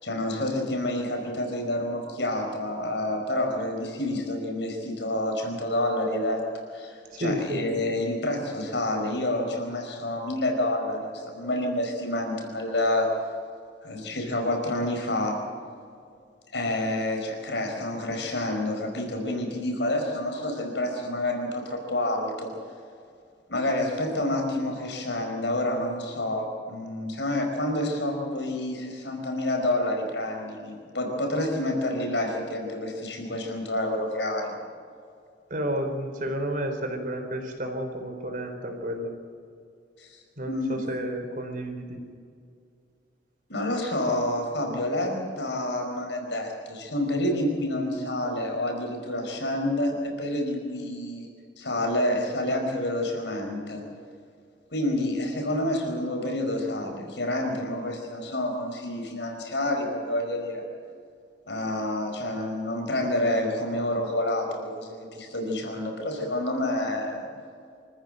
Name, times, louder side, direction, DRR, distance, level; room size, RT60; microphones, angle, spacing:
voice 1, 0.0-6.4 6.7-13.1 13.8-15.4 16.5-22.5 23.5-34.5 40.0-40.2 40.5-40.8 43.5-51.3 51.6-53.8 54.7-60.6 61.5-67.3, left 1 dB, 85° left, 3 dB, 5.1 m, -28 dB
voice 2, 7.1-7.7 35.5-39.1 40.4-42.0, equal, 50° right, 4 dB, 4.0 m, -31 dB
26.0 x 14.5 x 7.7 m, 2.3 s
head